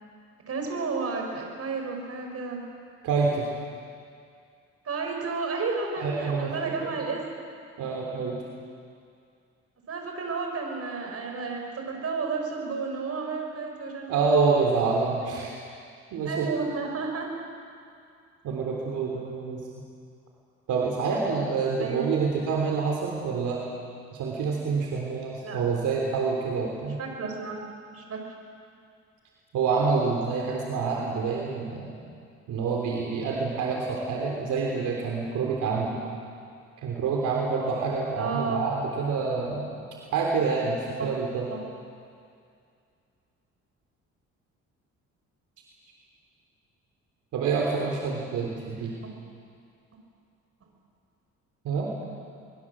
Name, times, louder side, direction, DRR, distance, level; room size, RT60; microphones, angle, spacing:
voice 1, 0.5-2.6 4.8-7.2 9.9-14.3 16.3-17.4 21.8-22.1 25.4-25.6 27.0-27.6 27.9-28.2 38.2-38.6 41.0-41.1 41.5-41.6, right 4 dB, 50° right, 2 dB, 6.1 m, -32 dB
voice 2, 3.0-3.5 6.0-6.9 7.8-8.4 14.1-15.6 16.1-16.5 18.4-19.7 20.7-23.6 24.1-27.0 29.5-31.9 32.5-36.0 36.8-39.8 40.1-41.5 47.3-49.0 51.6-51.9, right 4 dB, 85° right, -1 dB, 3.5 m, -27 dB
23.0 x 22.0 x 7.5 m, 2.3 s
cardioid pair, 90°, 30 cm